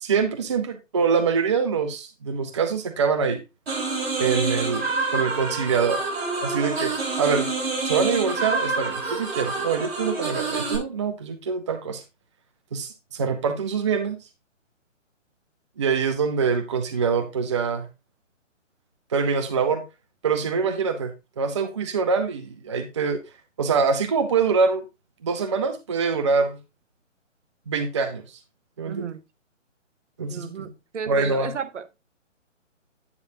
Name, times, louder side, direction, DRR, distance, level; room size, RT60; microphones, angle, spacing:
voice 1, 0.0-3.4 4.2-6.0 6.4-6.9 7.2-7.5 7.9-12.0 12.7-14.2 15.8-17.9 19.1-19.8 20.2-23.2 23.6-24.8 25.2-26.6 27.7-28.4 28.8-29.1 30.2-30.7 31.1-31.5, right 5 dB, 25° right, 0.5 m, -24 dB
sound 1, 3.7-10.8, right 3 dB, 50° right, 4.1 m, -27 dB
voice 2, 28.8-29.2 30.3-31.9, right 6 dB, 65° right, 0.9 m, -33 dB
9.6 x 6.4 x 2.7 m
figure-of-eight pair, 150°, 38 cm